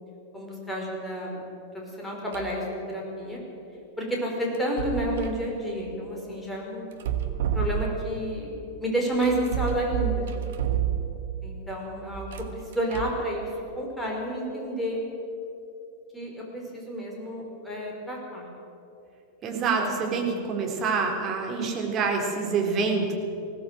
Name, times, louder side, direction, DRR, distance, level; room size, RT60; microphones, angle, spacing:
voice 1, 0.3-1.4 1.7-3.4 4.0-4.3 4.6-6.9 7.5-8.5 8.8-10.3 11.4-13.5 13.7-15.0 16.1-18.5 19.5-20.4, right 1 dB, 5° left, -2 dB, 5.6 m, -30 dB
sound 1, 2.3-2.7 4.6-5.4 6.9-8.2 9.2-11.4 12.1-13.3, right 10 dB, 60° right, 1.4 m, -30 dB
voice 2, 19.4-23.1, right 4 dB, 30° right, 1 dB, 3.7 m, -26 dB
20.5 x 17.0 x 7.9 m, 2.9 s
figure-of-eight pair, 90°, 0 cm